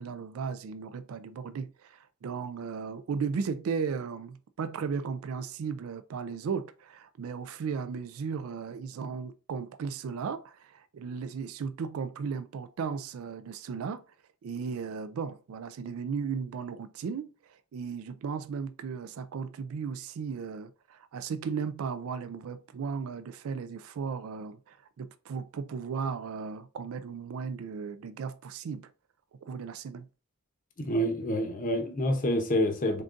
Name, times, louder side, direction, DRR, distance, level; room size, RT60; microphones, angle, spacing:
voice 1, 0.0-14.0 14.4-28.9 29.3-30.1, right 6 dB, 70° right, 0.3 m, -36 dB
voice 2, 30.8-33.0, equal, 40° left, 0.8 m, -27 dB
3.8 x 3.7 x 2.5 m
head